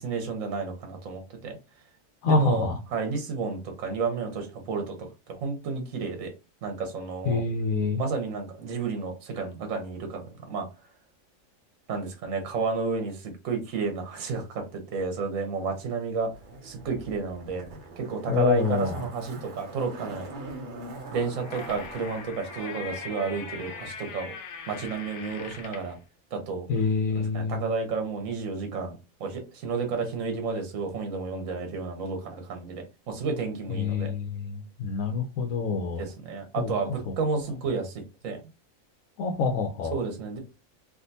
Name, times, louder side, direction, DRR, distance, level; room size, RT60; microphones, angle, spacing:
voice 1, 0.0-1.6 2.3-5.0 5.3-6.3 6.6-7.4 8.0-10.7 11.9-16.3 16.6-17.7 18.0-20.3 21.1-24.3 24.7-26.0 26.3-26.7 27.1-34.1 36.0-38.4 39.9-40.4, right 4 dB, 75° right, 5 dB, 1.2 m, -31 dB
voice 2, 2.2-2.8 7.2-8.0 18.3-19.1 26.7-27.7 33.7-36.0 36.6-36.7 37.1-37.2 39.2-40.0, left 4 dB, 90° left, 3 dB, 1.1 m, -26 dB
Zipper (clothing), 16.3-23.9 24.2-24.3, right 2 dB, 50° right, 0.7 m, -43 dB
sound 1, 21.1-26.0, left 5 dB, 65° left, 0.9 m, -41 dB
3.6 x 2.5 x 2.6 m, 0.29 s
omnidirectional pair, 1.4 m